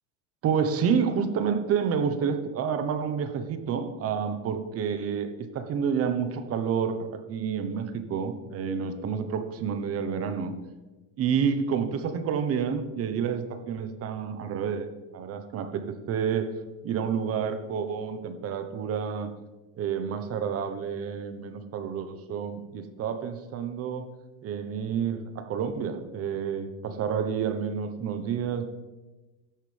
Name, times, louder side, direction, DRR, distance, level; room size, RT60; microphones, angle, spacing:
voice 1, 0.4-10.5 11.2-14.9 15.1-16.6 16.8-19.3 19.7-24.1 24.4-28.7, right 7 dB, 40° right, 9 dB, 1.1 m, -29 dB
12.5 x 9.9 x 3.5 m, 1.1 s
supercardioid pair, 130°, 38 cm